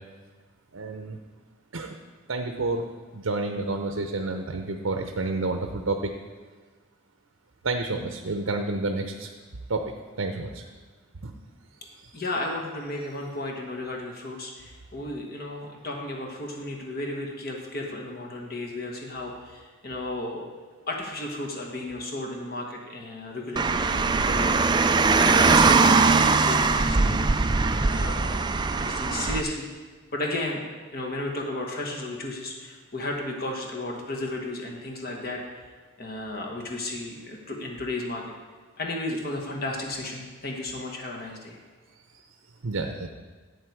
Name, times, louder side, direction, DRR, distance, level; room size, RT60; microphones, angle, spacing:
voice 1, 0.7-1.2 1.7-2.0 2.3-2.8 3.1-6.1 7.6-9.3 9.7-10.6 11.2-11.3 42.6-43.1, right 3 dB, 85° right, 5 dB, 0.7 m, -29 dB
voice 2, 12.1-20.4 20.9-24.5 25.1-27.2 27.7-28.4 28.8-29.7 30.1-30.6 30.9-35.4 36.0-38.2 38.8-41.6, left 2 dB, 45° left, 0 dB, 1.3 m, -34 dB
Car, 23.6-29.4, right 4 dB, 20° right, 0.3 m, -21 dB
11.5 x 8.2 x 4.7 m, 1.4 s
head